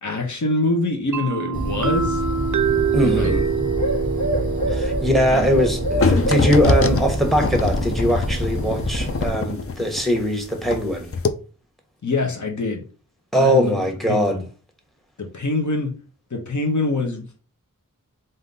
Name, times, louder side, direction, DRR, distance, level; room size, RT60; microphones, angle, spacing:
voice 1, 0.0-2.2 3.0-3.3 5.3-5.4 12.0-12.8 13.3-13.8 14.1-14.4 15.2-15.9 16.3-17.4, left 2 dB, 60° left, 0.9 m, -24 dB
sound 1, 1.1-8.8, right 6 dB, 60° right, 0.5 m, -27 dB
Bird, 1.5-9.3, right 1 dB, 85° left, 1.3 m, -25 dB
voice 2, 2.9-3.4 4.7-11.1 13.3-14.4, equal, ahead, 1.1 m, -21 dB
sound 2, 6.0-10.9 11.1-11.3, left 4 dB, 40° left, 0.5 m, -23 dB
3.6 x 2.7 x 3.9 m
wide cardioid pair, 40°, 34 cm